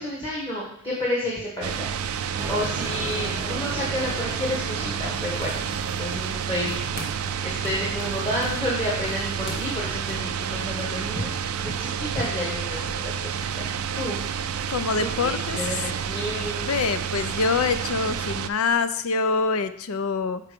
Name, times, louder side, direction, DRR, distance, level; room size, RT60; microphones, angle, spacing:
voice 1, 0.0-5.5 5.8-6.8 7.4-11.3 11.6-13.7 13.9-14.2 15.0-16.7, left 1 dB, 20° left, -5 dB, 1.5 m, -30 dB
sound 1, 1.6-18.5, right 7 dB, 75° right, 0.4 m, -30 dB
sound 2, 2.3-15.2, right 1 dB, 20° right, 0.8 m, -42 dB
sound 3, 5.1-6.4 6.7-7.3 7.6-10.3, left 2 dB, 50° left, 1.2 m, -42 dB
voice 2, 14.7-15.6 16.6-20.4, left 4 dB, 70° left, 12 dB, 0.5 m, -25 dB
6.0 x 4.4 x 5.2 m, 0.70 s
head